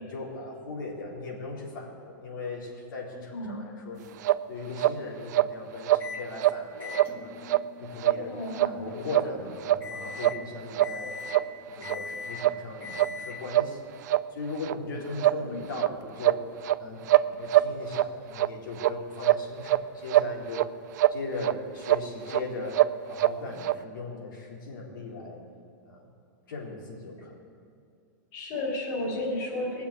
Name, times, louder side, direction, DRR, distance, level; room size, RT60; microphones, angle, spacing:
voice 1, 0.0-4.2 4.5-7.3 7.8-8.3 8.6-11.2 11.7-13.9 14.3-16.4 16.8-17.0 17.3-20.6 21.1-22.8 23.1-25.4 25.8-26.1 26.5-27.5, left 3 dB, 90° left, -2 dB, 3.8 m, -38 dB
sound 1, 4.2-4.4 4.8-5.0 5.3-5.5 5.8-6.1 6.4-6.6 6.9-7.1 7.5-7.6 8.0-8.2 8.5-8.7 9.1-9.3 9.6-9.8 10.2-10.4 10.7-10.9 11.3-11.5 11.8-11.9 12.4-12.6 12.9-13.1 13.5-13.7 14.1-14.2 14.6-14.7 15.2-15.4 15.8-15.9 16.2-16.8 17.1-18.1 18.4-18.5 18.8-18.9 19.2-19.8 20.1-20.7 21.0-21.2 21.4-21.5 21.8-22.0 22.3-22.4 22.7-23.3 23.6-23.8, right 15 dB, 60° right, 0.5 m, -23 dB
Microwave oven, 6.0-6.3 6.8-13.6, left 5 dB, 20° left, 1.6 m, -42 dB
voice 2, 8.3-8.9 15.4-15.6 28.3-29.8, left 1 dB, 40° left, -4 dB, 3.0 m, -33 dB
20.0 x 6.9 x 8.5 m, 2.4 s
supercardioid pair, 165°, 11 cm